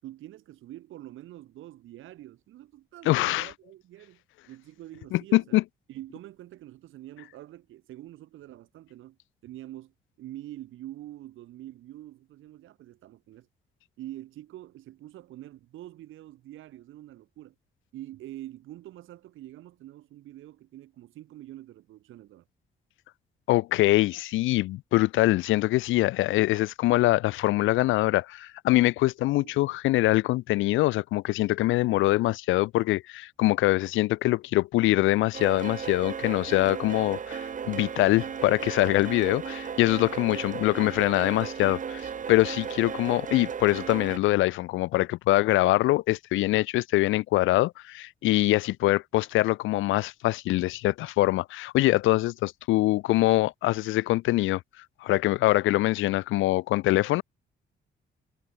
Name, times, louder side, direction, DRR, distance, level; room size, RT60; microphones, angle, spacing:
voice 1, 0.0-5.6 5.9-9.2 9.4-13.5 14.0-17.5 17.9-22.5 29.4-29.5 40.0-40.4, right 14 dB, 85° right, 7.9 m, -45 dB
voice 2, 3.1-3.5 5.1-5.6 23.5-54.6 55.0-57.2, left 17 dB, 80° left, 0.4 m, -24 dB
sound 1, 35.3-44.2, right 7 dB, 40° right, 1.1 m, -35 dB
cardioid pair, 90°, 20 cm